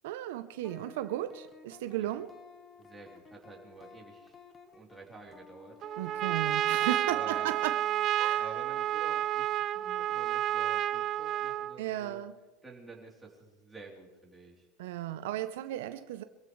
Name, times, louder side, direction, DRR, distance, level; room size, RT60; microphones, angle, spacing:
voice 1, 0.0-2.3 6.0-7.8 8.1-8.4 11.8-12.3 14.8-16.2, right 13 dB, 75° right, 0.7 m, -35 dB
sound 1, 0.6-8.1, left 4 dB, 20° left, 1.3 m, -55 dB
voice 2, 2.8-4.3 4.7-6.2 6.8-7.5 8.4-12.2 12.6-14.7, right 4 dB, 10° right, 3.4 m, -50 dB
Trumpet, 5.8-11.8, right 12 dB, 35° right, 0.4 m, -30 dB
25.0 x 15.5 x 3.2 m
supercardioid pair, 145°, 0 cm